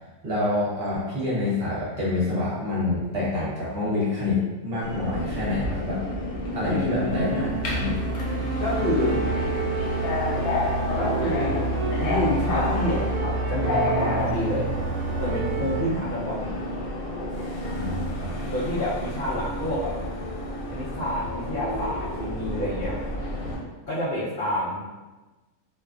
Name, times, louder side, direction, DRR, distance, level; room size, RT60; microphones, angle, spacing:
voice 1, 0.2-6.0 6.5-7.9 17.7-18.5, left 2 dB, 50° right, -8 dB, 0.9 m, -27 dB
Subway metro underground, 4.8-23.6, left 1 dB, 85° left, 1.1 m, -30 dB
voice 2, 6.6-7.5 8.6-9.2 10.9-14.7 15.2-16.6 18.5-19.9 20.7-23.0 23.9-24.8, left 1 dB, 65° left, -9 dB, 0.5 m, -28 dB
sound 1, 7.1-15.9, right 3 dB, 80° right, 1.0 m, -28 dB
2.5 x 2.3 x 2.4 m, 1.2 s
omnidirectional pair, 1.5 m